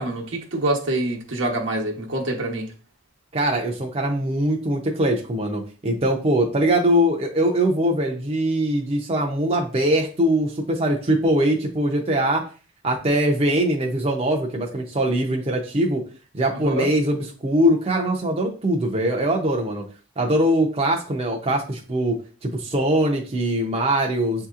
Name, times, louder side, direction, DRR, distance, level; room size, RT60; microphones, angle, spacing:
voice 1, 0.0-2.7 16.6-16.9, right 1 dB, 75° right, 1.0 m, -25 dB
voice 2, 3.3-12.4 12.8-16.0 16.3-19.8 20.2-24.5, right 1 dB, 30° right, 0.6 m, -22 dB
7.1 x 2.8 x 2.4 m
head